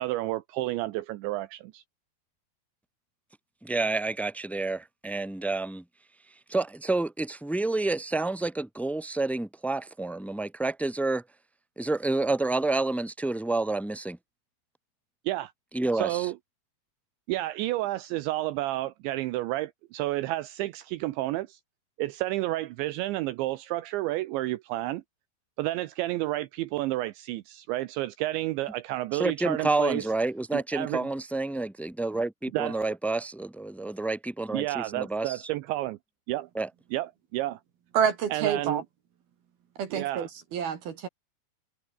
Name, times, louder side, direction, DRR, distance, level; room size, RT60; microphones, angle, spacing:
voice 1, 0.0-1.8 15.3-15.5 16.0-16.3 17.3-21.5 22.0-25.0 25.6-30.0 30.5-31.1 32.5-32.8 34.5-36.0 36.3-36.5 36.9-37.6 38.3-38.8 39.9-40.3, right 17 dB, 80° right, 3.0 m, -30 dB
voice 2, 3.6-5.8 6.5-11.2 11.8-14.2 15.7-16.3 29.1-35.4 36.5-36.7, right 2 dB, ahead, 3.6 m, -29 dB
voice 3, 37.9-38.8 39.8-41.1, right 7 dB, 55° right, 3.7 m, -28 dB
omnidirectional pair, 5.6 m